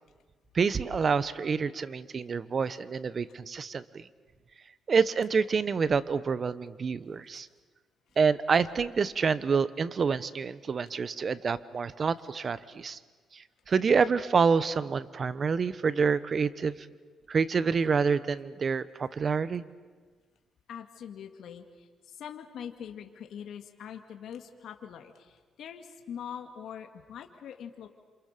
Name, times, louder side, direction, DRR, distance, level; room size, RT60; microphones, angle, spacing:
voice 1, 0.5-4.1 4.9-7.5 8.2-13.0 13.3-16.7 17.3-19.6, right 5 dB, 45° right, 15 dB, 1.1 m, -27 dB
voice 2, 20.7-27.9, left 8 dB, 70° left, 4 dB, 2.4 m, -43 dB
28.5 x 28.0 x 6.9 m, 1.4 s
cardioid pair, 90°, 0 cm